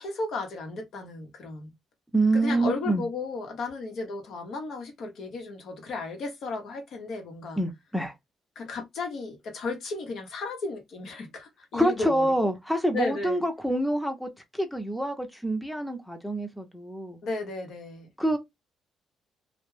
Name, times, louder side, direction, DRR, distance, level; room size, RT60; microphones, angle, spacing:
voice 1, 0.0-1.7 2.3-7.6 8.6-12.3 12.9-13.4 17.2-18.1, left 3 dB, 70° left, 0.8 m, -34 dB
voice 2, 2.1-3.0 7.6-8.1 11.7-17.2 18.2-18.4, right 1 dB, 5° left, 0.6 m, -26 dB
2.2 x 2.1 x 3.2 m
cardioid pair, 90°, 0 cm